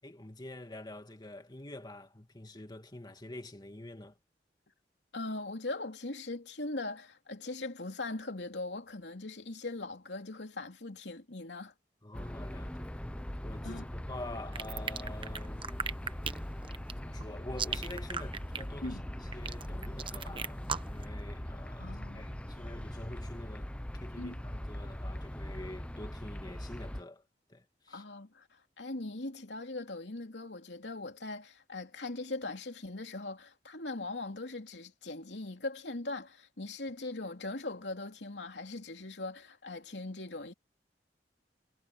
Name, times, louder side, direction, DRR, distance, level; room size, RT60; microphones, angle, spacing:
voice 1, 0.0-4.2 12.0-15.7 17.0-27.2 27.5-28.0, left 1 dB, 25° left, 2.2 m, -47 dB
voice 2, 5.1-11.7 13.6-13.9 18.8-19.0 21.8-22.3 24.2-24.4 27.9-40.5, left 2 dB, 90° left, 2.9 m, -40 dB
sound 1, 12.1-27.0, equal, 5° left, 0.6 m, -41 dB
sound 2, 14.5-21.0, right 6 dB, 30° right, 1.0 m, -37 dB
head